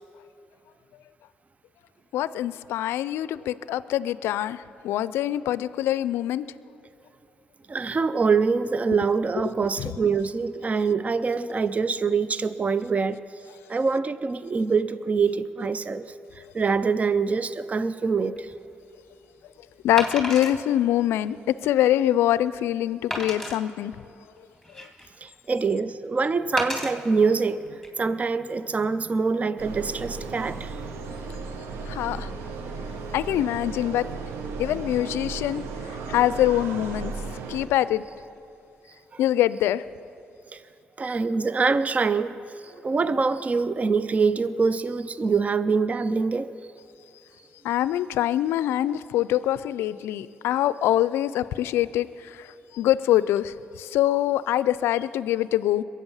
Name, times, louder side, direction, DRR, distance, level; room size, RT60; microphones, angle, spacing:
voice 1, 2.1-6.4 9.8-9.9 19.8-24.0 24.8-24.9 31.9-32.3 33.1-34.1 34.6-37.1 37.5-38.0 39.2-39.8 47.6-55.8, left 13 dB, 80° left, 17 dB, 0.4 m, -24 dB
voice 2, 7.7-13.2 13.7-18.5 25.2-30.8 39.1-39.2 40.5-40.6 41.0-46.5, right 4 dB, 35° right, 14 dB, 0.5 m, -25 dB
Wood, 18.4-18.5 20.0-20.6 21.2-21.3 21.8-21.9 23.1-23.6 24.4-25.1 26.6-26.9 27.7-27.9, left 1 dB, ahead, 3.1 m, -31 dB
sound 1, 29.6-37.7, right 4 dB, 80° right, 0.9 m, -35 dB
22.5 x 8.4 x 5.5 m, 2.6 s
supercardioid pair, 55°, 4 cm